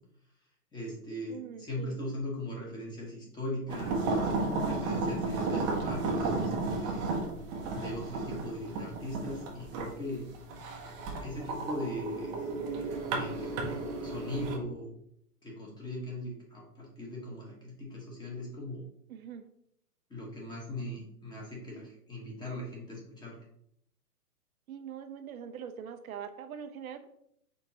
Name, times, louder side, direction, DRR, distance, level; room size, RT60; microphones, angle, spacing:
voice 1, 0.7-4.1 4.7-7.1 7.7-10.3 11.2-12.3 13.1-13.5 14.0-14.9 15.4-18.8 20.1-23.4, left 1 dB, 10° left, -3 dB, 1.1 m, -39 dB
voice 2, 1.3-2.0 19.1-19.4 24.7-27.1, right 8 dB, 65° right, 8 dB, 0.6 m, -43 dB
sound 1, 3.7-14.6, right 3 dB, 20° right, 0.7 m, -33 dB
5.3 x 3.6 x 2.8 m, 0.72 s
hypercardioid pair, 130°, 46 cm